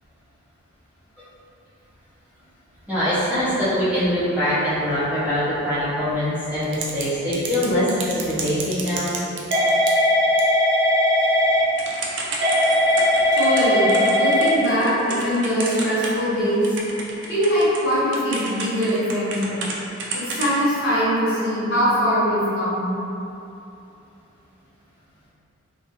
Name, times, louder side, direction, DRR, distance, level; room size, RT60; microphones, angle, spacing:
voice 1, 2.9-9.1, equal, 5° right, -14 dB, 0.6 m, -23 dB
Typing / Telephone, 6.6-7.0 7.3-16.3 16.6-19.7 20.0-20.6, left 1 dB, 60° right, 0.3 m, -20 dB
voice 2, 13.3-16.8 17.3-19.6 20.1-22.9, equal, 55° left, -11 dB, 0.9 m, -22 dB
2.3 x 2.2 x 2.7 m, 2.8 s
head